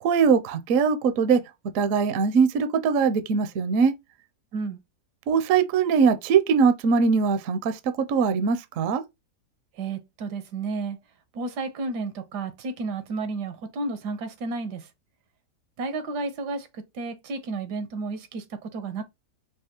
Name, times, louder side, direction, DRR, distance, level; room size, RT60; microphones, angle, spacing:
voice 1, 0.0-1.4 1.7-3.9 5.3-9.0, right 5 dB, 65° right, 0.9 m, -21 dB
voice 2, 9.8-11.0 11.3-14.9 15.8-19.0, right 3 dB, 80° right, 1.4 m, -32 dB
4.7 x 2.3 x 2.8 m
omnidirectional pair, 1.8 m